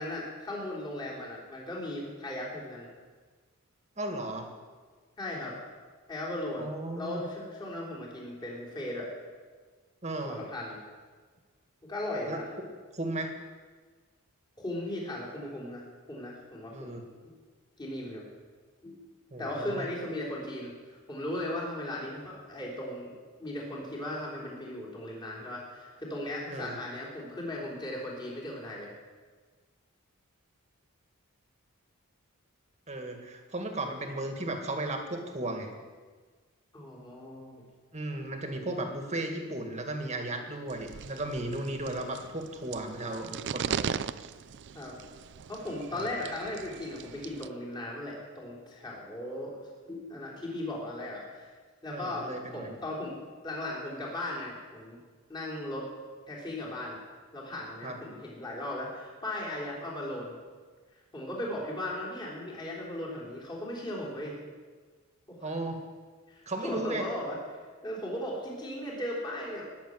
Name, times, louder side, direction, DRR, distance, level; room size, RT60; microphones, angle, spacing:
voice 1, 0.0-2.9 5.2-5.6 6.1-6.7 7.0-9.1 10.2-10.8 11.8-12.5 14.6-17.0 17.8-18.2 18.8-19.0 19.4-23.1 23.4-28.9 36.7-37.6 44.7-45.0 45.5-49.5 49.9-51.5 51.8-53.2 53.4-55.0 55.3-55.9 56.3-57.0 57.3-60.4 61.1-64.4 65.3-65.5 66.3-67.4 67.8-69.6, left 1 dB, 20° left, -5 dB, 3.6 m, -37 dB
voice 2, 4.0-4.5 6.6-7.2 10.0-10.4 12.3-12.4 12.9-13.3 16.7-17.0 19.3-19.9 26.5-26.8 32.9-35.7 37.9-44.0 45.9-46.1 51.9-52.7 57.8-58.0 65.4-65.8 66.5-67.0, right 2 dB, 30° right, 4 dB, 1.9 m, -35 dB
sound 1, 40.7-47.5, right 7 dB, 55° right, 0.4 m, -39 dB
20.0 x 7.2 x 7.9 m, 1.5 s
head